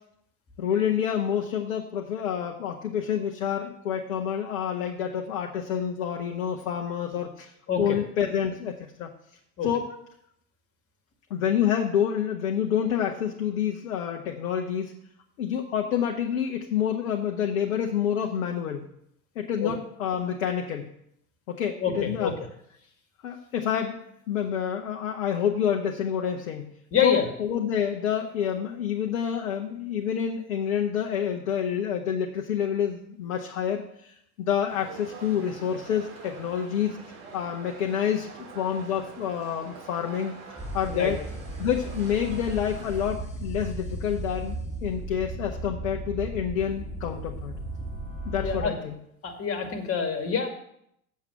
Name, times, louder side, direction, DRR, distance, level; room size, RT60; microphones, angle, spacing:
voice 1, 0.6-7.5 7.8-9.1 9.6-9.8 11.3-14.9 15.4-18.9 19.3-20.9 21.5-22.3 23.2-24.0 24.3-26.7 27.0-37.0 37.3-40.3 40.7-41.2 41.6-47.6 48.2-49.0, left 8 dB, 60° left, 1 dB, 1.3 m, -28 dB
voice 2, 21.8-22.3 26.9-27.2 40.9-41.1 48.4-48.7 49.2-50.5, left 6 dB, 30° left, 6 dB, 2.2 m, -26 dB
sound 1, 34.7-43.1, right 4 dB, 45° right, 3.2 m, -45 dB
sound 2, 40.6-48.7, right 1 dB, 15° left, 1.6 m, -35 dB
7.6 x 7.1 x 8.0 m, 0.74 s
figure-of-eight pair, 80°, 44 cm